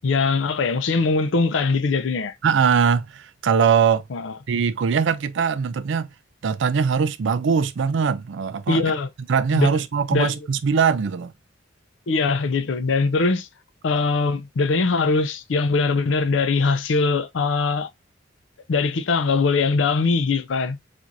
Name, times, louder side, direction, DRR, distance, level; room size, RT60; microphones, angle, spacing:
voice 1, 0.0-2.3 4.1-4.4 8.7-9.1 9.5-9.8 10.1-10.5 12.1-13.5 13.8-17.9 18.7-20.8, left 4 dB, 80° left, 0.5 m, -21 dB
voice 2, 2.4-4.0 4.5-6.1 6.4-8.8 9.3-11.3, right 6 dB, 70° right, 0.4 m, -21 dB
4.4 x 2.5 x 2.5 m
head